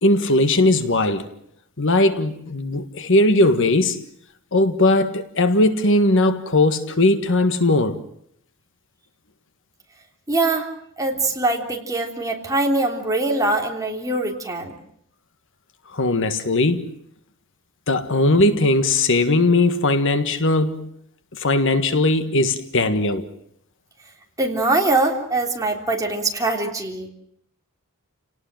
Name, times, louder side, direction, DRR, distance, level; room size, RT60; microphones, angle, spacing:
voice 1, 0.0-1.3 1.8-4.0 4.5-8.0 15.9-16.9 17.9-20.9 21.4-23.3, left 2 dB, 60° left, 1.6 m, -19 dB
voice 2, 10.3-10.7 11.0-14.7 24.4-27.1, right 2 dB, 15° right, 3.4 m, -22 dB
29.5 x 18.5 x 7.6 m
head